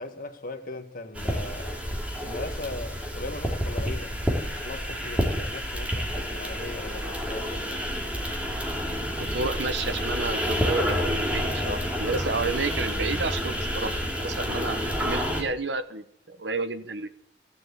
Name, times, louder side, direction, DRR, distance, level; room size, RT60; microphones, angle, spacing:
voice 1, 0.0-1.8 2.2-7.8, left 2 dB, 55° left, 1.6 m, -39 dB
sound 1, 1.1-15.4, equal, 10° right, 2.8 m, -29 dB
voice 2, 9.2-17.1, right 3 dB, 80° right, 1.2 m, -31 dB
16.0 x 7.6 x 8.2 m
head